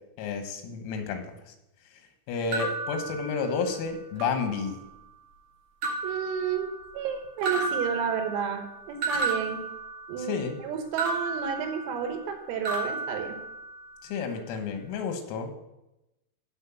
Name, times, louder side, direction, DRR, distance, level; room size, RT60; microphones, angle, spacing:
voice 1, 0.2-1.5 2.3-4.8 10.2-10.6 14.0-15.5, left 5 dB, 90° left, 6 dB, 3.9 m, -31 dB
sound 1, 2.5-3.8 4.2-5.0 5.8-7.1 7.4-10.4 11.0-12.4 12.6-14.0, right 3 dB, 70° right, 1.8 m, -33 dB
voice 2, 6.0-9.6 10.1-13.4, right 7 dB, 85° right, 5 dB, 4.0 m, -31 dB
12.5 x 4.5 x 7.1 m, 0.93 s
omnidirectional pair, 6.0 m